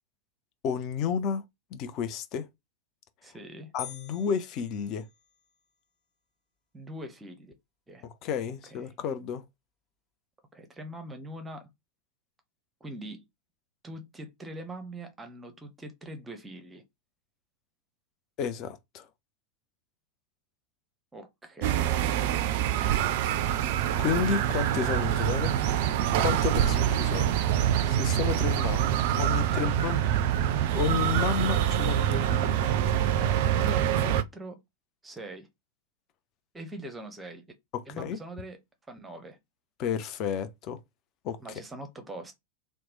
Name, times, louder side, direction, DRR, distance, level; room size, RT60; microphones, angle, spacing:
voice 1, 0.6-1.4 1.7-2.5 3.7-5.1 8.0-9.4 18.4-19.1 24.0-25.5 26.2-27.3 27.9-30.0 30.7-32.6 37.7-38.2 39.8-40.8 41.2-41.4, left 7 dB, 40° left, 0.4 m, -31 dB
voice 2, 3.2-3.7 6.7-7.5 7.9-8.1 8.7-8.9 10.5-11.7 12.8-13.2 13.8-16.8 21.1-22.1 29.5-29.7 33.2-34.6 35.0-35.5 36.5-37.4 37.9-38.6 38.9-39.4 41.4-42.3, right 1 dB, 10° right, 0.7 m, -42 dB
sound 1, 3.8-5.6, left 10 dB, 25° left, 1.3 m, -46 dB
sound 2, 21.6-34.2, right 11 dB, 50° right, 0.3 m, -25 dB
2.9 x 2.1 x 3.0 m
figure-of-eight pair, 90°, 0 cm